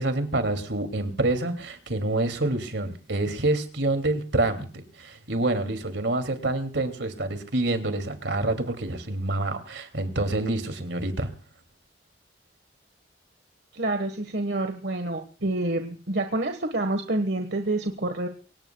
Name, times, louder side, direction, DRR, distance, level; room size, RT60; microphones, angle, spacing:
voice 1, 0.0-11.3, right 2 dB, 80° right, 7 dB, 2.7 m, -27 dB
voice 2, 13.7-18.3, right 2 dB, 65° right, 6 dB, 1.5 m, -28 dB
24.5 x 18.5 x 2.3 m, 0.39 s
head